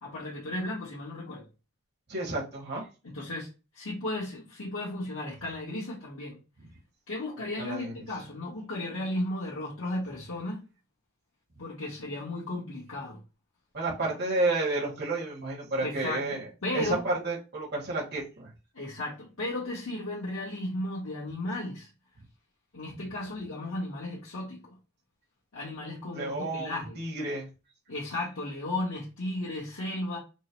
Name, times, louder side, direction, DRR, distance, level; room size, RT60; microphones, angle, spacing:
voice 1, 0.0-1.4 3.0-6.4 7.1-10.6 11.6-13.2 15.8-17.0 18.7-21.9 22.7-24.7 25.5-27.0 27.9-30.2, left 1 dB, 85° left, 1.4 m, -35 dB
voice 2, 2.1-2.8 7.6-7.9 13.7-16.4 16.7-18.5 26.1-27.5, right 2 dB, 50° right, 1.7 m, -31 dB
4.4 x 2.1 x 4.5 m
head